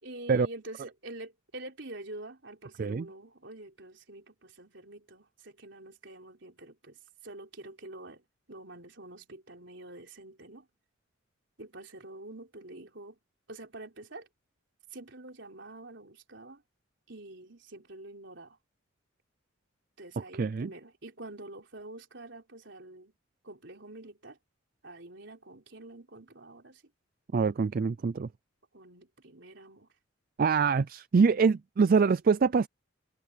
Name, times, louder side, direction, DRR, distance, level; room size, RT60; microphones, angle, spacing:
voice 1, 0.0-10.7 11.6-13.2 13.5-14.3 14.9-16.6 17.1-18.6 20.0-23.1 23.4-24.4 24.8-26.8 28.7-29.9, right 2 dB, 65° right, 4.4 m, -47 dB
voice 2, 20.4-20.7 27.3-28.3 30.4-32.7, right 5 dB, 45° right, 0.4 m, -24 dB
head